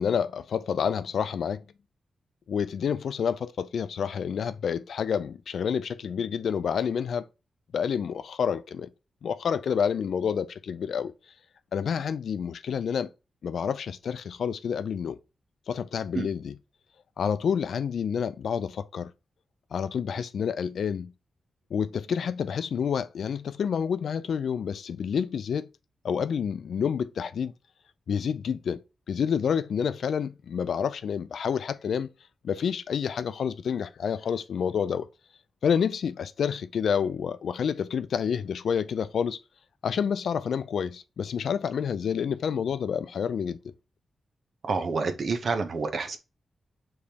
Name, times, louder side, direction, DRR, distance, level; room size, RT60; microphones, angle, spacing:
voice 1, 0.0-1.6 2.5-7.3 7.7-8.9 9.2-11.1 11.7-13.1 13.4-15.2 15.7-16.6 17.2-19.1 19.7-21.1 21.7-25.7 26.0-27.5 28.1-28.8 29.1-32.1 32.4-35.1 35.6-39.4 39.8-43.6, left 7 dB, 75° left, 0.4 m, -28 dB
voice 2, 44.6-46.2, right 4 dB, 55° right, 0.7 m, -28 dB
5.0 x 3.2 x 2.8 m
wide cardioid pair, 125°, 0 cm